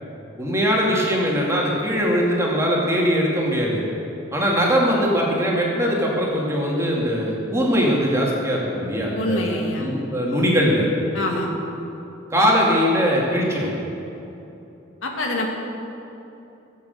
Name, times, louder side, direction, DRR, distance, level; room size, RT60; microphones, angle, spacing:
voice 1, 0.4-3.8 4.3-9.5 9.8-10.9 12.3-13.7, equal, 15° right, -3 dB, 2.2 m, -21 dB
voice 2, 9.2-9.9 11.1-11.5 15.0-15.5, left 1 dB, 85° left, 0 dB, 2.1 m, -25 dB
15.0 x 7.6 x 7.9 m, 2.9 s
head